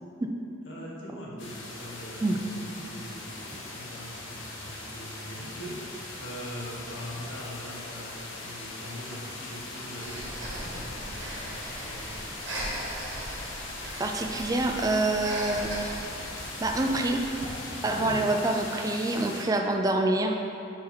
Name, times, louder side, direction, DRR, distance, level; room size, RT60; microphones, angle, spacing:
voice 1, 0.6-12.1, equal, 75° left, -4 dB, 1.2 m, -42 dB
sound 1, 1.4-19.5, left 2 dB, 90° left, 0.9 m, -40 dB
Breathing, 10.0-17.7, right 1 dB, 70° right, 1.2 m, -39 dB
voice 2, 14.0-15.9 16.6-17.2 17.8-20.4, right 2 dB, 20° right, 3 dB, 0.3 m, -26 dB
6.1 x 4.3 x 4.2 m, 2.8 s
head